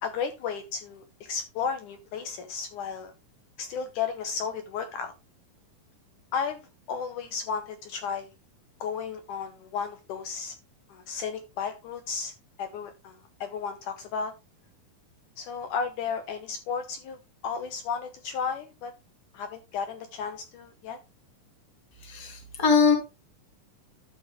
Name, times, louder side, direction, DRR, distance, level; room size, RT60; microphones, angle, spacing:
voice 1, 0.0-3.1 3.6-5.1 6.3-6.6 6.9-8.3 8.8-10.5 10.9-12.3 12.6-14.3 15.4-17.2 17.4-18.9 19.3-21.0, left 6 dB, 70° left, 2.0 m, -33 dB
voice 2, 22.1-22.9, left 5 dB, 10° left, 1.3 m, -22 dB
12.5 x 5.4 x 3.4 m
omnidirectional pair, 4.2 m